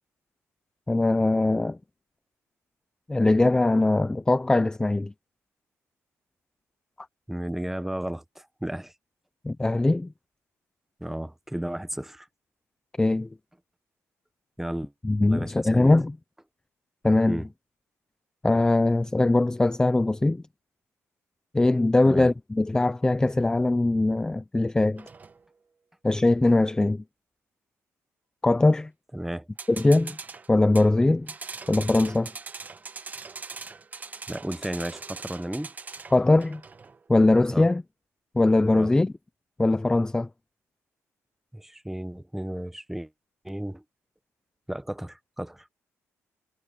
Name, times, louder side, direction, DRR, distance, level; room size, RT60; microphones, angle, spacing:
voice 1, 0.9-1.8 3.1-5.1 9.4-10.1 13.0-13.3 15.0-16.1 17.0-17.4 18.4-20.4 21.5-25.1 26.0-27.0 28.4-28.9 29.7-30.2 30.5-31.3 31.7-32.3 36.1-36.6 37.1-37.8 38.3-39.1 39.6-40.3, left 2 dB, 15° left, 0.6 m, -21 dB
voice 2, 7.3-8.9 11.0-12.3 14.6-14.9 15.3-15.9 17.3-17.5 22.0-22.3 29.1-29.5 34.3-35.7 37.5-37.7 38.7-38.9 41.5-43.1 43.4-43.8 44.7-45.7, right 1 dB, 5° right, 1.1 m, -33 dB
sound 1, 25.0-25.4 29.6-30.9 31.3-37.0, right 4 dB, 30° right, 1.2 m, -41 dB
cardioid pair, 105°, 5 cm